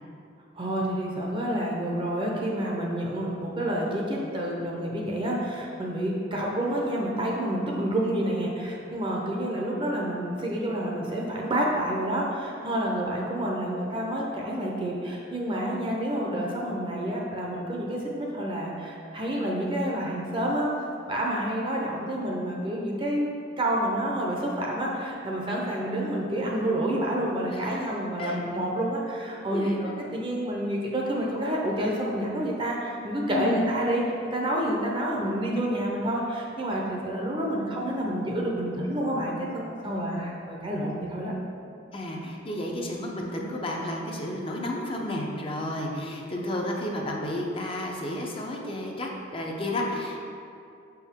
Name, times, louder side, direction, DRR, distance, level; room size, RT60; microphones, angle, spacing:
voice 1, 0.6-20.7 21.1-23.3 23.6-41.3, right 1 dB, 25° right, -2 dB, 0.6 m, -29 dB
voice 2, 27.5-28.4 29.5-29.9 33.3-33.7 39.8-40.2 41.9-50.2, left 1 dB, 30° left, 0 dB, 0.6 m, -32 dB
6.2 x 4.5 x 3.6 m, 2.6 s
head